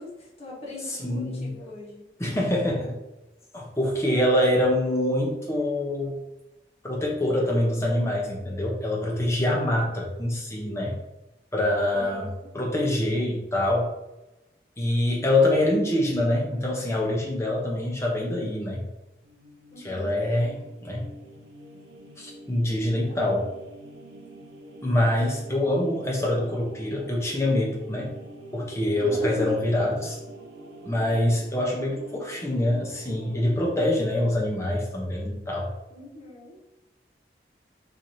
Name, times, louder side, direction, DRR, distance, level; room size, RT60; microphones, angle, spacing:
voice 1, 0.0-2.0 11.9-12.5 19.7-20.2 23.0-23.2 28.9-29.6 35.9-36.6, left 1 dB, 35° left, -5 dB, 1.0 m, -39 dB
voice 2, 1.0-1.5 2.2-3.0 3.5-6.2 6.8-11.0 11.5-12.3 12.5-13.9 14.8-18.8 19.8-21.0 22.2-23.5 24.8-28.1 28.5-30.2 30.8-35.7, left 1 dB, 15° left, -3 dB, 0.7 m, -25 dB
sound 1, 19.2-34.3, right 1 dB, 80° right, 0.6 m, -45 dB
4.5 x 2.7 x 2.7 m, 0.96 s
head